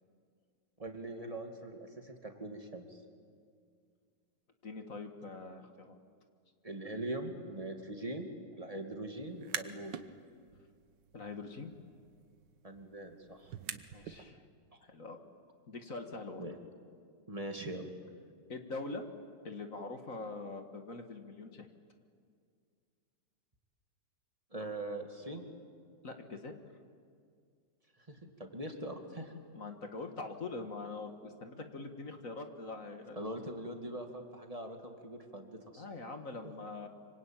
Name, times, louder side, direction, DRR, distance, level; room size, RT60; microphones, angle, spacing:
voice 1, 0.8-3.0 6.6-8.3 8.6-10.0 12.6-13.5 16.4-16.6 17.3-17.9 24.5-25.4 28.1-29.3 33.2-36.0, right 1 dB, 20° right, 4 dB, 2.3 m, -42 dB
voice 2, 4.6-6.0 11.1-11.7 13.9-14.4 14.8-15.2 15.7-16.5 18.5-19.0 19.4-21.7 26.0-26.6 29.5-33.3 35.8-36.9, left 3 dB, 50° left, 5 dB, 2.0 m, -43 dB
sound 1, 9.3-10.1 10.5-14.2, right 9 dB, 80° right, 1.7 m, -45 dB
26.0 x 25.0 x 9.1 m, 2.2 s
omnidirectional pair, 1.9 m